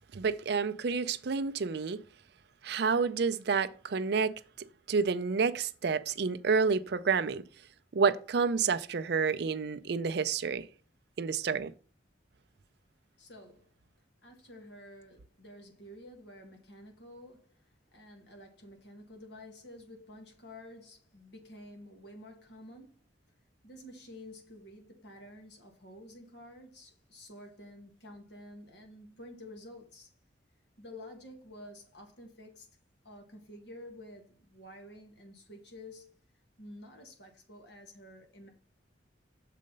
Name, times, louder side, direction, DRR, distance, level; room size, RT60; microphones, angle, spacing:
voice 1, 0.1-2.0 2.6-4.3 4.9-7.4 7.9-10.7 11.2-11.7, right 5 dB, 60° right, 0.5 m, -29 dB
voice 2, 13.2-13.7 14.2-23.0 23.6-30.1 30.8-32.7 33.0-36.1 36.6-38.5, left 1 dB, 65° left, 1.7 m, -50 dB
6.5 x 4.1 x 5.3 m
head